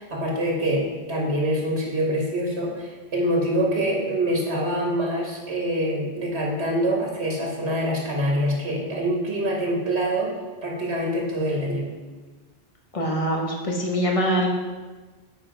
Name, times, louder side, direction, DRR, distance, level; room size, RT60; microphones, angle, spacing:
voice 1, 0.0-10.3 10.6-11.9, equal, 85° right, -1 dB, 1.7 m, -25 dB
voice 2, 12.9-14.5, equal, 35° left, 0 dB, 1.1 m, -23 dB
8.0 x 4.1 x 4.9 m, 1.3 s
omnidirectional pair, 1.1 m